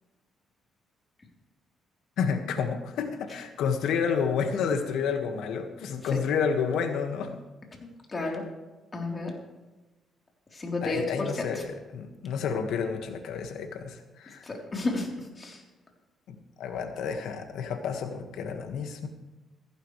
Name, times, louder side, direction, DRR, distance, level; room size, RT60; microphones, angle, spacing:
voice 1, 2.2-7.4 8.2-8.4 10.8-14.4 16.3-19.1, left 6 dB, 80° left, 5 dB, 1.7 m, -30 dB
voice 2, 8.1-8.4 8.9-9.3 10.6-11.3 14.5-15.1 15.4-15.6, left 2 dB, 30° left, 0 dB, 3.7 m, -31 dB
15.5 x 15.0 x 3.3 m, 1.1 s
cardioid pair, 90°, 0 cm